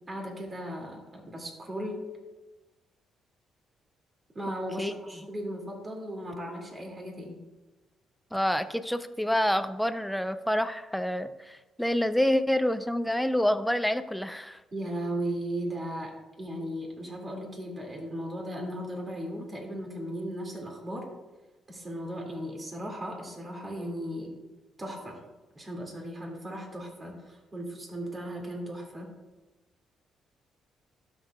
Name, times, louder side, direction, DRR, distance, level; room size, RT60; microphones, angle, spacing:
voice 1, 0.1-2.1 4.3-7.4 14.7-16.1 16.4-21.1 21.7-24.3 24.8-25.2 25.5-29.1, equal, 30° right, 0 dB, 2.3 m, -36 dB
voice 2, 8.3-14.6, left 1 dB, 5° left, 11 dB, 0.5 m, -27 dB
12.0 x 6.6 x 2.4 m, 1.1 s
cardioid pair, 90°, 0 cm